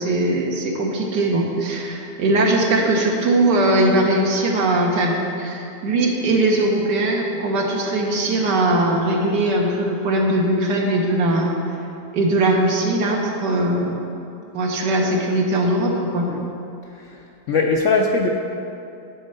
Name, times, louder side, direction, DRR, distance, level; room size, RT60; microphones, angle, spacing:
voice 1, 0.0-11.5 12.1-14.0 14.5-16.3, right 1 dB, 80° right, 0 dB, 1.8 m, -20 dB
voice 2, 16.9-18.3, left 3 dB, 65° left, 1 dB, 0.7 m, -21 dB
9.9 x 4.4 x 7.7 m, 2.7 s
omnidirectional pair, 1.8 m